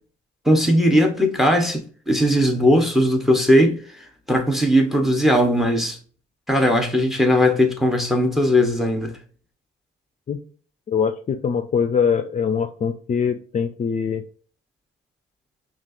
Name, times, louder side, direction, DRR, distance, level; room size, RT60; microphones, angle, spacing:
voice 1, 0.4-3.8 4.3-6.0 6.5-9.1, equal, ahead, 1.1 m, -18 dB
voice 2, 10.9-14.2, left 6 dB, 40° left, 0.5 m, -23 dB
5.9 x 2.5 x 2.7 m
cardioid pair, 90°, 20 cm